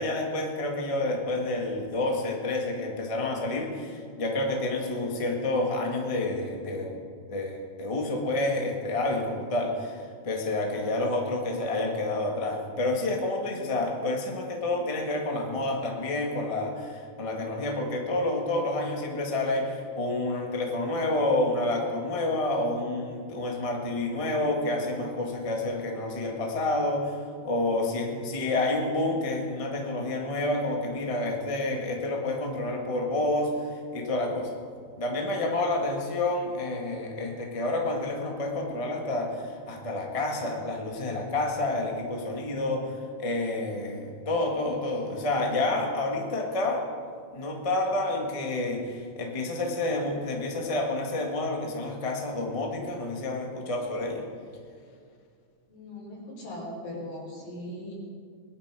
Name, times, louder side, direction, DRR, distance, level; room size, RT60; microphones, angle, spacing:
voice 1, 0.0-7.0 7.3-34.5 35.0-46.9 47.3-54.3, left 2 dB, 65° left, 1 dB, 0.3 m, -29 dB
voice 2, 55.7-57.9, left 1 dB, 85° left, -5 dB, 6.5 m, -39 dB
21.5 x 11.5 x 4.9 m, 2.1 s
omnidirectional pair, 4.3 m